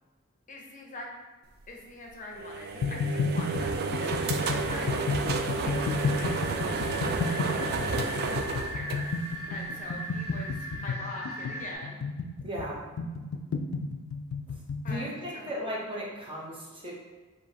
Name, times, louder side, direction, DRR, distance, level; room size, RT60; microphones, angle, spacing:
voice 1, 0.5-1.1 1.7-5.8 6.1-6.8 7.3-9.2 9.5-12.0 14.8-15.5, left 2 dB, 35° left, 0 dB, 0.6 m, -43 dB
sound 1, 2.3-9.6, right 4 dB, 50° right, 0.3 m, -31 dB
sound 2, 2.8-15.1, left 4 dB, 85° left, 0.4 m, -32 dB
sound 3, 5.6-11.7, right 1 dB, 70° right, 1.3 m, -39 dB
voice 2, 12.4-12.8 14.5-16.9, equal, 25° right, -4 dB, 0.8 m, -37 dB
4.9 x 2.8 x 2.8 m, 1.3 s
head